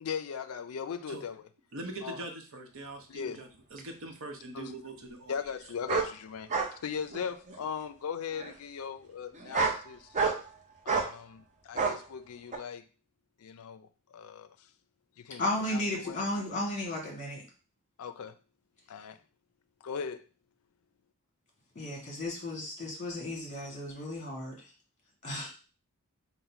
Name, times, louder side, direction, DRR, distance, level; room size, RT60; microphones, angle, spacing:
voice 1, 0.0-1.4 2.0-2.2 3.1-3.4 4.5-4.7 5.3-6.5 6.8-10.1 10.8-12.8 13.4-14.6 15.2-16.3 18.0-18.3 18.9-19.2 19.8-20.2, left 6 dB, 70° left, 0.4 m, -38 dB
voice 2, 1.7-5.3 6.5-6.7, right 2 dB, 65° right, 0.8 m, -42 dB
sound 1, 3.8-3.9 5.9-6.1 6.5-6.7 7.1-7.6 8.4-8.5 9.3-9.8 10.1-10.5 10.9-11.1 11.8-12.0 12.5-12.6, right 4 dB, 35° right, 0.6 m, -29 dB
voice 3, 15.4-17.4 21.7-24.6 25.2-25.5, left 1 dB, 35° left, 1.5 m, -34 dB
3.9 x 2.1 x 4.4 m
head